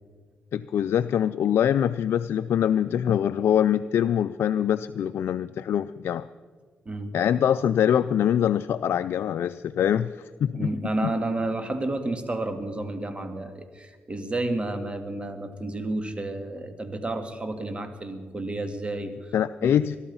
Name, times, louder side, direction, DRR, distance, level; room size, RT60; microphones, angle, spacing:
voice 1, 0.5-6.2 7.1-10.7 11.0-11.1 19.3-20.0, left 9 dB, 70° left, 11 dB, 0.4 m, -24 dB
voice 2, 10.5-19.3 19.6-19.7, right 2 dB, 25° right, 7 dB, 2.3 m, -31 dB
21.5 x 12.0 x 5.6 m, 1.5 s
supercardioid pair, 60°, 4 cm